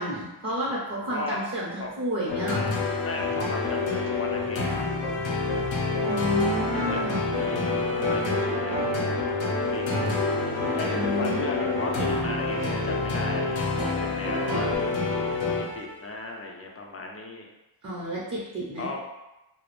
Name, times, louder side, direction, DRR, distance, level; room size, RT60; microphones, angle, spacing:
voice 1, 0.0-2.7 6.1-7.3 10.9-11.5 17.8-18.9, equal, 35° right, -6 dB, 0.6 m, -31 dB
voice 2, 1.1-1.4 1.8-1.9 3.0-4.8 6.7-7.0 7.4-8.8 9.4-9.8 10.8-17.5 18.8-19.0, left 2 dB, 35° left, 0 dB, 0.4 m, -36 dB
sound 1, 2.3-16.0, left 4 dB, 80° left, 0.6 m, -28 dB
sound 2, 5.5-14.8, right 2 dB, 90° right, 0.6 m, -33 dB
2.2 x 2.0 x 2.9 m, 1.0 s
wide cardioid pair, 80°, 45 cm